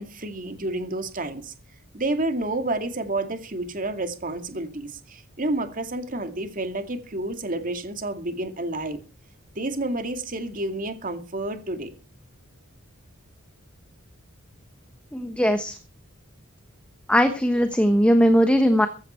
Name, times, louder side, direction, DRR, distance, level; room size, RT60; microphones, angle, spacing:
voice 1, 0.0-1.5 1.9-9.0 9.6-11.9, right 2 dB, 40° right, 2.2 m, -30 dB
voice 2, 15.1-15.7 17.1-18.9, equal, 5° left, 1.1 m, -19 dB
15.5 x 12.5 x 4.4 m
head